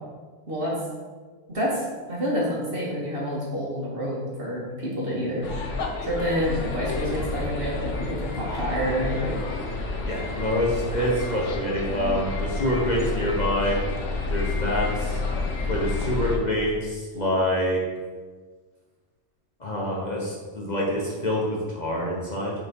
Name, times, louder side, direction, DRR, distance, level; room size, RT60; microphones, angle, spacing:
voice 1, 1.5-5.5 6.0-9.4 9.9-10.0, equal, 50° right, -5 dB, 2.1 m, -28 dB
sound 1, 5.4-16.4, left 3 dB, 85° left, 1.3 m, -29 dB
voice 2, 10.0-13.8 14.3-15.2 15.7-17.8 19.6-22.5, equal, 35° left, -4 dB, 1.3 m, -26 dB
5.9 x 5.5 x 4.6 m, 1.4 s
omnidirectional pair, 1.2 m